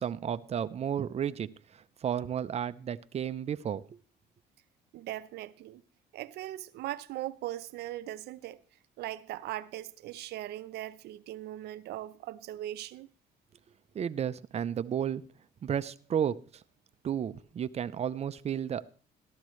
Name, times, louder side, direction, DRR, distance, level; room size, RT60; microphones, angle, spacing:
voice 1, 0.0-1.5 2.0-4.0 13.9-15.3 15.6-16.4 17.0-18.9, right 9 dB, 40° right, 0.7 m, -32 dB
voice 2, 4.9-5.8 6.1-8.6 9.0-13.1, right 14 dB, 75° right, 0.7 m, -39 dB
13.5 x 12.5 x 3.2 m
cardioid pair, 110°, 17 cm